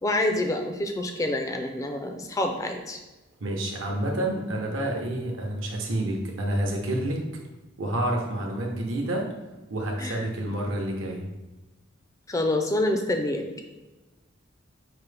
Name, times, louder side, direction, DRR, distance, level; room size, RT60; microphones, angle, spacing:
voice 1, 0.0-3.0 10.0-10.3 12.3-13.7, left 1 dB, 15° left, 5 dB, 0.3 m, -27 dB
voice 2, 3.4-7.2 7.8-9.3 9.7-11.3, right 1 dB, 75° right, 0 dB, 0.8 m, -28 dB
5.9 x 2.0 x 3.3 m, 1.1 s
head